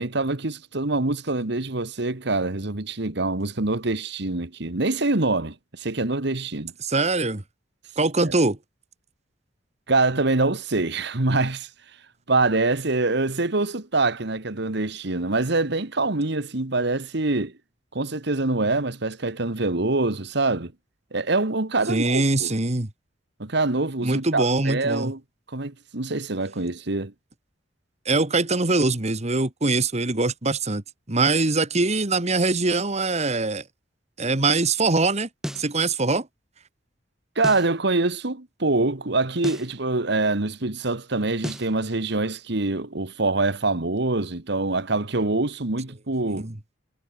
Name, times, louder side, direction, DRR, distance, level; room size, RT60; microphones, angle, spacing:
voice 1, 0.0-6.7 8.3-8.4 9.9-11.7 12.3-17.5 17.9-20.7 21.1-22.5 23.4-25.2 25.5-27.1 37.3-46.5, right 2 dB, 65° right, 1.7 m, -25 dB
voice 2, 6.8-7.4 8.0-8.6 21.9-22.9 24.0-25.1 28.1-30.8 31.1-33.6 34.2-35.3 35.6-36.3 46.4-46.5, right 3 dB, 35° right, 1.8 m, -23 dB
sound 1, 35.4-35.7 37.4-37.7 39.4-39.7 41.4-41.7, equal, 5° right, 4.6 m, -32 dB
head